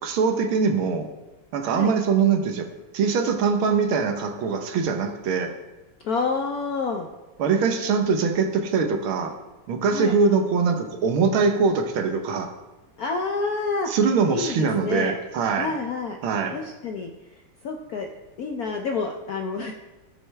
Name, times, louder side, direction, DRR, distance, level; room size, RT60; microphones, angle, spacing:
voice 1, 0.0-1.1 1.5-2.7 2.9-5.5 7.4-9.4 9.7-12.5 13.9-15.8 16.2-16.6, right 5 dB, 75° right, 6 dB, 1.8 m, -22 dB
voice 2, 6.0-7.1 9.9-10.4 13.0-13.9 14.3-15.2 15.5-16.2 16.5-17.1 17.6-18.1 18.4-19.7, left 4 dB, 70° left, 3 dB, 0.9 m, -28 dB
16.5 x 6.8 x 3.4 m, 1.1 s
omnidirectional pair, 2.4 m